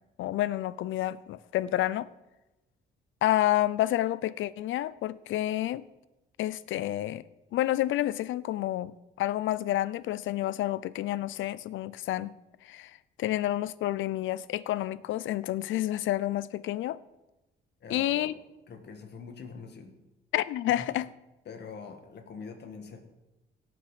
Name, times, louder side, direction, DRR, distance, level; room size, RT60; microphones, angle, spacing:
voice 1, 0.2-2.1 3.2-5.8 6.4-7.2 7.5-12.3 12.6-17.0 17.9-18.3 20.3-21.1, left 14 dB, 75° left, 0.5 m, -29 dB
voice 2, 17.8-18.3 18.7-20.0 20.8-20.9 21.5-23.0, left 5 dB, 60° left, 2.0 m, -44 dB
17.0 x 5.9 x 5.1 m
cardioid pair, 90°, 20 cm